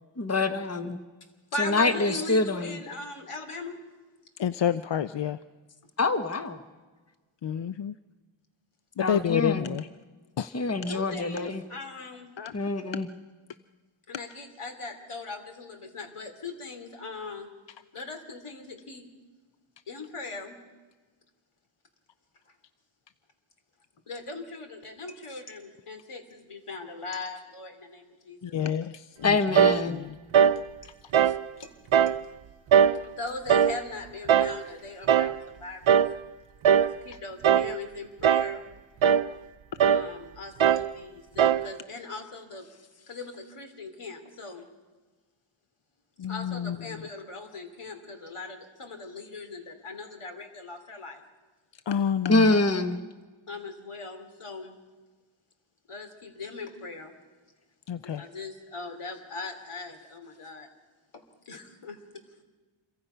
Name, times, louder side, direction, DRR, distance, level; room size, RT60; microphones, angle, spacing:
voice 1, 0.2-1.0 1.6-2.8 6.0-6.6 9.0-9.8 10.5-11.6 12.5-13.1 29.2-30.0 52.3-53.0, left 2 dB, 30° left, 9 dB, 1.2 m, -25 dB
voice 2, 1.5-3.8 10.9-12.3 14.1-17.5 17.9-19.1 19.9-20.6 24.1-28.5 30.5-30.6 31.6-31.7 33.0-36.0 36.8-38.6 39.8-42.7 43.1-44.7 46.3-51.2 53.5-54.7 55.9-57.1 58.0-60.7 61.5-62.0, left 3 dB, 90° left, 6 dB, 2.8 m, -39 dB
voice 3, 4.4-5.4 7.4-7.9 9.0-9.9 10.4-10.5 12.4-12.5 28.4-29.4 29.9-30.1 46.2-46.8 51.9-52.5 57.9-58.3, left 9 dB, 60° left, 13 dB, 0.6 m, -28 dB
sound 1, 29.6-29.8 30.3-30.6 31.1-31.4 31.9-32.2 32.7-33.0 33.5-33.8 34.3-34.6 35.1-35.4 35.9-36.2 36.6-36.9 37.4-37.8 38.2-38.6 39.0-39.3 39.8-40.1 40.6-40.9 41.4-41.7, right 8 dB, 70° right, 0.7 m, -20 dB
27.0 x 23.5 x 5.6 m, 1.3 s
wide cardioid pair, 95°, 50 cm